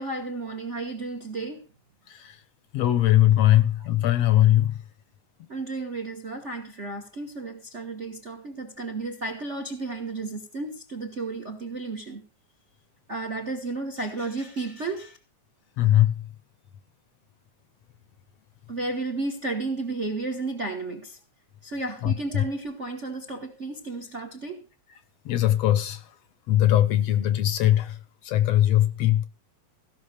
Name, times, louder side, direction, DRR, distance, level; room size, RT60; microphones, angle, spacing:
voice 1, 0.0-1.7 3.4-3.6 5.5-12.2 13.1-15.2 18.7-21.2 21.6-24.6, right 3 dB, 40° right, 1.1 m, -33 dB
voice 2, 2.7-4.7 15.8-16.1 22.0-22.4 25.3-26.0 26.5-27.9 28.3-29.2, left 13 dB, 70° left, 1.8 m, -20 dB
16.0 x 6.1 x 6.6 m
omnidirectional pair, 3.3 m